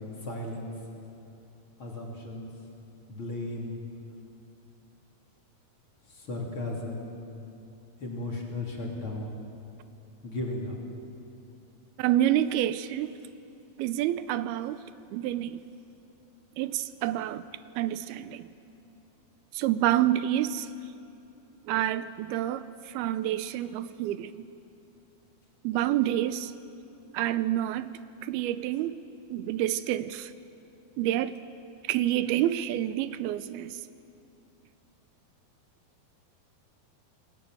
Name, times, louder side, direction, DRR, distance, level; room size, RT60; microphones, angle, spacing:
voice 1, 0.2-0.7 1.8-2.5 3.1-3.8 6.1-7.1 8.0-9.4 10.2-10.8, left 2 dB, 35° left, 3.7 m, -35 dB
voice 2, 12.0-13.2 13.8-14.9 15.1-15.6 16.6-17.4 17.8-18.5 19.5-20.7 21.7-24.5 25.6-26.5 27.1-27.9 28.2-29.0 29.3-30.3 31.0-31.4 31.8-33.8, right 13 dB, 85° right, 2.6 m, -28 dB
28.0 x 19.5 x 7.9 m
omnidirectional pair, 4.4 m